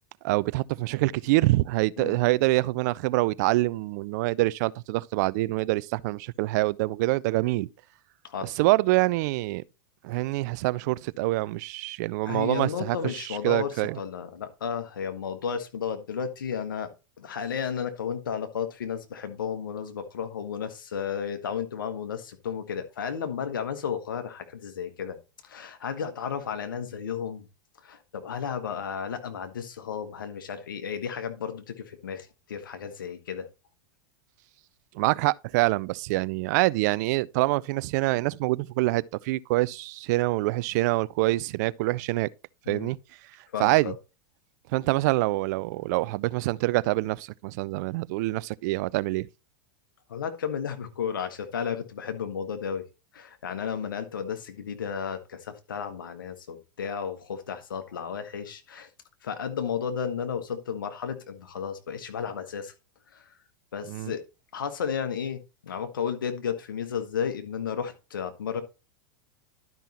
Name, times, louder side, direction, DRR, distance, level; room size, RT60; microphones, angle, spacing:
voice 1, 0.2-7.7 8.4-9.6 10.0-14.0 34.9-42.3 42.7-43.0 43.6-43.9 44.7-49.3 63.9-64.1, right 20 dB, 55° right, 0.4 m, -25 dB
voice 2, 8.2-8.6 12.2-16.9 17.2-25.2 25.4-27.5 27.8-33.5 42.6-42.9 43.5-43.9 50.1-52.8 53.1-58.9 59.2-62.7 63.1-63.3 63.7-64.2 64.5-68.6, left 7 dB, 80° left, 1.4 m, -33 dB
12.0 x 5.4 x 2.9 m
hypercardioid pair, 100°, 11 cm